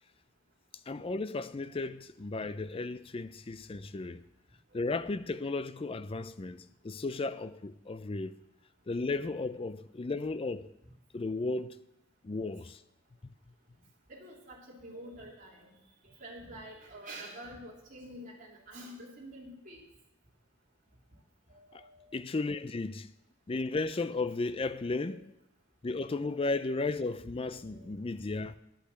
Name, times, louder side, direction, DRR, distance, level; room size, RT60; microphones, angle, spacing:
voice 1, 0.9-4.2 4.7-8.4 8.9-10.6 11.1-11.8 12.2-12.8 21.7-21.8 22.1-23.1 23.5-25.3 25.8-28.6, left 3 dB, 30° left, 0.4 m, -34 dB
voice 2, 14.1-15.8 16.0-19.8 21.5-22.1 23.9-24.0 24.6-25.2 27.7-27.9, right 1 dB, 40° right, 3.0 m, -48 dB
10.5 x 8.6 x 7.6 m
head